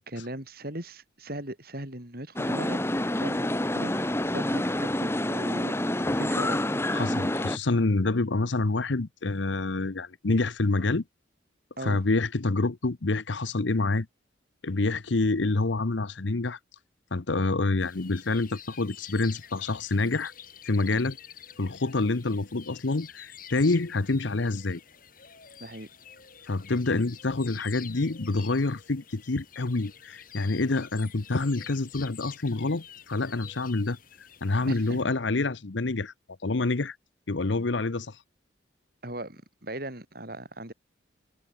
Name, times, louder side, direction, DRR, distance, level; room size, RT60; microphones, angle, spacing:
voice 1, 0.1-2.8 3.1-3.5 3.7-7.0 11.8-12.0 25.6-25.9 34.7-35.0 39.0-40.7, right 1 dB, 50° right, 6.0 m, -39 dB
sound 1, 2.4-7.6, left 1 dB, 15° left, 1.5 m, -27 dB
voice 2, 6.9-11.0 11.8-14.1 14.6-16.6 17.1-20.3 20.7-21.2 21.6-24.8 26.5-34.0 34.4-36.1 36.4-37.0 37.3-38.2, left 3 dB, 75° left, 0.9 m, -27 dB
sound 2, 17.8-35.0, left 9 dB, 45° left, 6.5 m, -49 dB
head